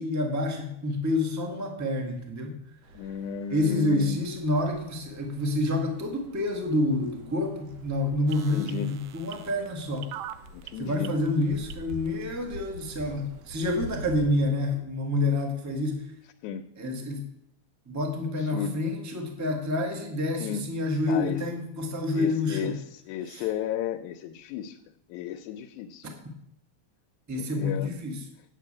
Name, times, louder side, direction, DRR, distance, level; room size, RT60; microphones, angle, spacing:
voice 1, 0.0-2.6 3.5-10.1 10.8-16.0 16.8-17.3 17.9-22.7 23.3-23.4 26.0-26.1 27.3-28.3, left 2 dB, 15° right, 3 dB, 0.6 m, -28 dB
sound 1, 2.8-14.4, equal, 65° right, 2.1 m, -46 dB
voice 2, 2.9-4.2 8.5-8.9 10.5-11.2 16.4-16.6 18.4-18.8 20.4-20.6 21.1-21.4 22.1-22.7 23.1-24.8 25.1-26.1 27.4-27.9, left 9 dB, 85° left, 5 dB, 2.1 m, -33 dB
sound 2, 8.3-12.2 12.8-12.9, right 12 dB, 85° right, 1.3 m, -42 dB
8.4 x 7.6 x 8.6 m, 0.77 s
omnidirectional pair, 3.4 m